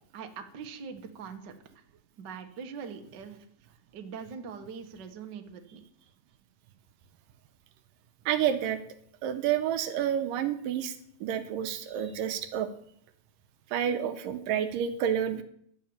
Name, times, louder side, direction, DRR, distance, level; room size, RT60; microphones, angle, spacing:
voice 1, 0.1-1.5 2.2-3.4 3.9-5.8, right 6 dB, 60° right, 5 dB, 1.1 m, -42 dB
voice 2, 8.3-8.8 9.2-10.9 11.2-12.7 13.7-15.4, right 9 dB, 75° right, 9 dB, 2.3 m, -29 dB
12.0 x 7.0 x 8.7 m, 0.65 s
omnidirectional pair, 4.2 m